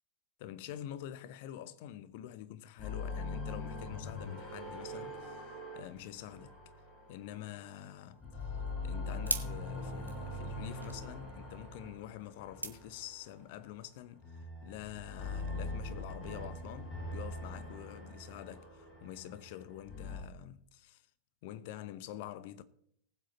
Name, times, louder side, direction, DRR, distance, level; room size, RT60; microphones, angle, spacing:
voice 1, 0.4-6.6 7.1-8.2 8.8-21.0 21.4-22.6, left 12 dB, 50° left, 0.8 m, -47 dB
sound 1, 2.8-7.7 8.1-13.4 14.2-20.2, left 2 dB, 20° left, 5.9 m, -42 dB
sound 2, 7.9-13.6, right 2 dB, 85° right, 1.1 m, -44 dB
19.0 x 7.8 x 4.0 m
figure-of-eight pair, 90°, 0 cm